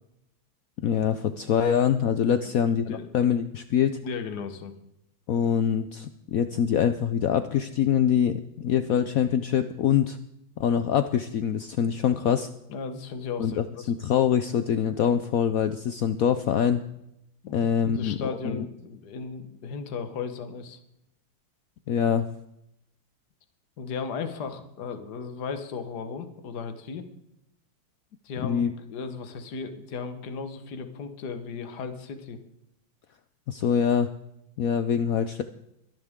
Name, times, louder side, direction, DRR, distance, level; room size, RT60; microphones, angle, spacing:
voice 1, 0.8-4.0 5.3-10.2 10.6-12.5 13.4-16.8 17.5-18.2 18.4-18.6 21.9-22.2 28.4-28.7 33.5-34.1 34.6-35.4, left 8 dB, 85° left, 11 dB, 0.7 m, -24 dB
voice 2, 4.0-4.8 12.7-13.9 17.4-20.8 23.8-27.0 28.2-32.4, left 5 dB, 55° left, 8 dB, 1.8 m, -36 dB
23.0 x 11.0 x 3.6 m, 0.82 s
omnidirectional pair, 2.2 m